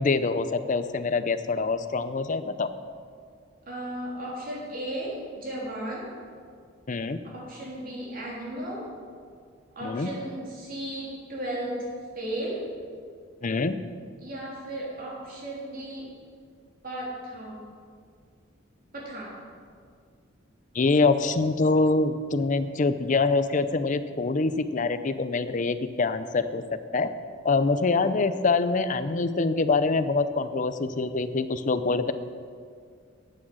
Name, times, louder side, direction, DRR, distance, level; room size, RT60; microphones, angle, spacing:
voice 1, 0.0-2.7 6.9-7.2 9.8-10.1 13.4-13.8 20.7-26.6 26.9-27.1 27.4-32.1, left 3 dB, 40° left, 12 dB, 0.5 m, -25 dB
voice 2, 3.7-6.1 7.3-8.8 9.7-11.9 12.1-12.6 14.2-16.1 16.8-17.6 18.9-19.4, right 1 dB, 50° right, -4 dB, 3.5 m, -35 dB
11.5 x 8.7 x 6.3 m, 2.1 s
head